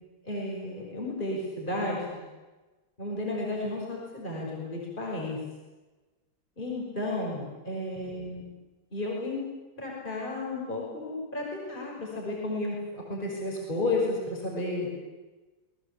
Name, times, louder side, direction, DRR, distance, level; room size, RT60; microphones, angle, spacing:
voice 1, 0.2-2.2 3.0-5.4 6.6-8.4 8.9-9.4 9.8-14.9, left 2 dB, 20° left, -2 dB, 5.8 m, -32 dB
27.5 x 20.5 x 8.4 m, 1.2 s
omnidirectional pair, 2.3 m